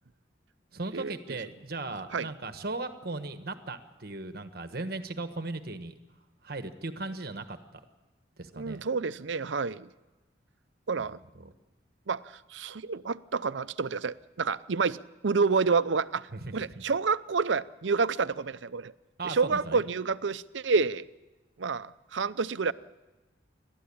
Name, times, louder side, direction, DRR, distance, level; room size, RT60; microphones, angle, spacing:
voice 1, 0.7-5.9 6.4-7.8 8.4-8.8 11.0-11.1 11.3-11.5 16.3-16.8 19.2-19.8, right 2 dB, 55° right, 9 dB, 1.3 m, -37 dB
voice 2, 8.5-9.9 10.9-11.2 12.1-12.2 12.5-16.3 16.5-18.9 19.2-21.0 21.6-22.7, right 4 dB, 80° right, 15 dB, 0.7 m, -28 dB
29.5 x 12.5 x 8.6 m, 1.2 s
head